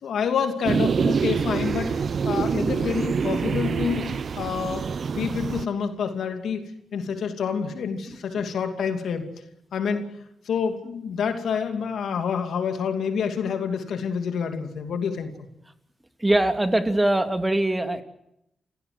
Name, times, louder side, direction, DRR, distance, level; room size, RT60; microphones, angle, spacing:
voice 1, 0.0-6.6 6.9-9.3 9.7-10.1 10.4-15.5, left 6 dB, 80° left, 6 dB, 2.7 m, -28 dB
sound 1, 0.6-5.6, right 6 dB, 65° right, 0.8 m, -25 dB
voice 2, 16.2-18.0, right 1 dB, 20° right, 7 dB, 2.7 m, -22 dB
28.5 x 16.0 x 7.9 m, 0.79 s
supercardioid pair, 50°, 0 cm